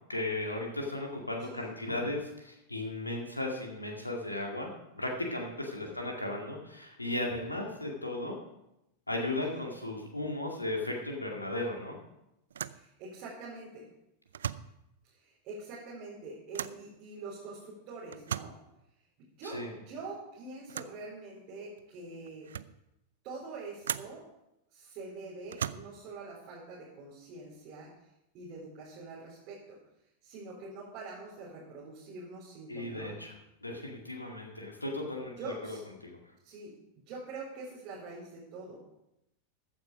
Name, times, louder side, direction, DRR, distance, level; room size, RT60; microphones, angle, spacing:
voice 1, 0.1-8.4 9.1-12.0 19.4-19.7 32.7-33.3 33.6-35.8 36.0-36.2, left 2 dB, 85° left, 1 dB, 2.1 m, -36 dB
sound 1, 11.2-11.5 11.8-11.9 12.5-12.9 14.2-14.8 16.5-16.9 18.1-18.6 20.7-21.0 21.8-21.9 22.3-22.8 23.8-24.2 25.4-26.1, right 9 dB, 65° right, 0.4 m, -38 dB
voice 2, 12.7-13.9 15.0-18.5 19.2-22.5 23.2-24.2 24.7-27.9 28.3-29.8 30.2-33.2 35.4-35.8 36.4-38.8, right 3 dB, 40° right, -5 dB, 4.3 m, -45 dB
14.0 x 9.5 x 5.1 m, 0.87 s
figure-of-eight pair, 90°, 0 cm